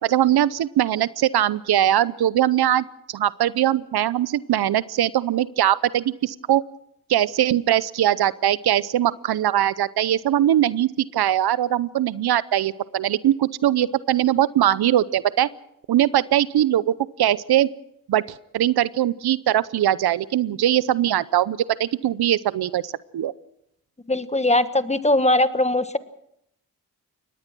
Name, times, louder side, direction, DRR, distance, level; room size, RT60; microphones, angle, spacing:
voice 1, 0.0-6.6 7.1-15.5 15.9-17.7 18.1-18.2 18.5-23.3, right 12 dB, 80° right, 18 dB, 0.7 m, -21 dB
voice 2, 24.1-26.0, left 1 dB, 15° left, 12 dB, 1.3 m, -20 dB
23.5 x 19.0 x 6.1 m, 0.77 s
cardioid pair, 55°, 38 cm